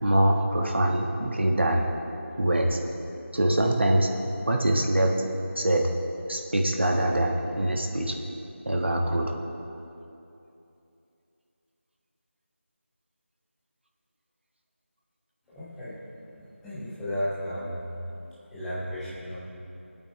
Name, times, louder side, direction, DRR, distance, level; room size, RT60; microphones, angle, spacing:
voice 1, 0.0-1.9 2.4-2.8 3.3-4.1 4.5-5.3 5.5-5.9 6.3-8.2 8.6-9.3, right 1 dB, 55° right, 1 dB, 1.3 m, -24 dB
voice 2, 15.5-16.0 16.6-17.8 18.5-19.4, equal, ahead, -11 dB, 0.6 m, -33 dB
22.5 x 8.7 x 3.2 m, 2.8 s
figure-of-eight pair, 170°, 7 cm